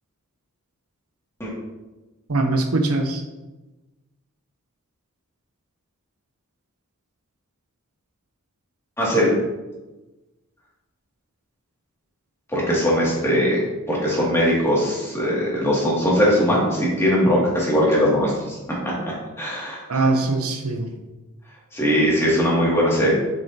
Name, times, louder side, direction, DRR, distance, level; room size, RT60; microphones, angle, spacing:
voice 1, 2.3-3.2 19.9-21.0, right 2 dB, 80° right, 5 dB, 0.9 m, -22 dB
voice 2, 9.0-9.3 12.5-13.6 13.9-18.6 19.4-20.1 21.7-23.1, equal, 10° left, -6 dB, 2.4 m, -20 dB
8.5 x 6.8 x 2.9 m, 1.1 s
head